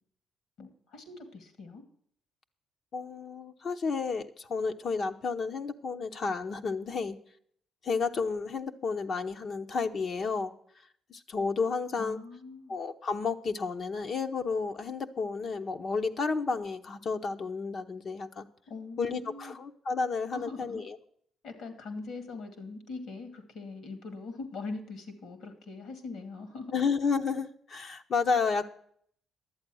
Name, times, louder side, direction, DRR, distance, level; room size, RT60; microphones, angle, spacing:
voice 1, 0.6-1.8 12.0-12.8 18.7-19.6 20.3-20.8 21.4-26.7, left 3 dB, 75° left, 8 dB, 2.4 m, -42 dB
voice 2, 2.9-7.2 7.8-10.5 11.1-12.2 12.7-18.5 19.0-21.0 26.7-28.6, left 4 dB, 55° left, 6 dB, 0.9 m, -31 dB
11.5 x 8.3 x 6.2 m, 0.64 s
cardioid pair, 90°, 0 cm